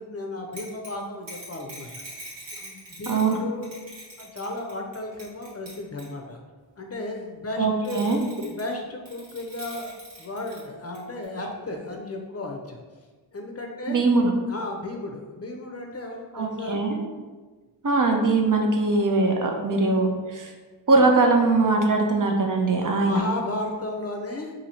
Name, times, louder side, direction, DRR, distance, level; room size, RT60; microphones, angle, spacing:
voice 1, 0.0-2.0 2.6-3.7 4.2-6.4 6.8-8.0 8.5-12.8 13.3-14.0 14.5-16.8 21.6-21.7 22.8-24.5, left 2 dB, 35° left, 1 dB, 0.5 m, -34 dB
sound 1, 0.5-3.4 3.6-6.1 7.8-8.7 9.1-10.6 10.9-11.0 11.2-11.3, right 1 dB, 85° right, 1.3 m, -42 dB
voice 2, 3.1-3.4 7.6-8.2 13.9-14.3 16.3-17.0 17.8-20.5 20.9-23.2, right 3 dB, 50° right, 2 dB, 0.6 m, -21 dB
2.8 x 2.7 x 4.2 m, 1.3 s
wide cardioid pair, 60°, 42 cm